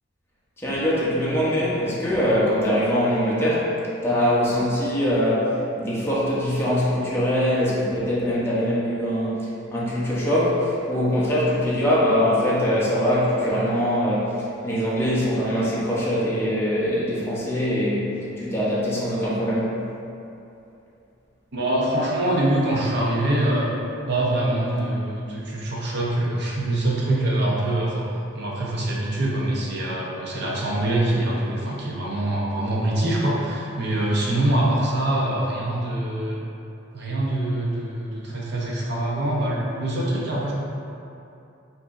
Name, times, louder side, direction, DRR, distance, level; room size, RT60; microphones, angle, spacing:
voice 1, 0.6-3.7 4.0-18.0 18.4-19.8, equal, 10° left, -8 dB, 0.7 m, -22 dB
voice 2, 21.5-23.7 24.1-28.1 28.3-36.4 36.9-40.5, right 1 dB, 60° right, -4 dB, 0.7 m, -24 dB
4.9 x 2.7 x 2.5 m, 2.7 s
head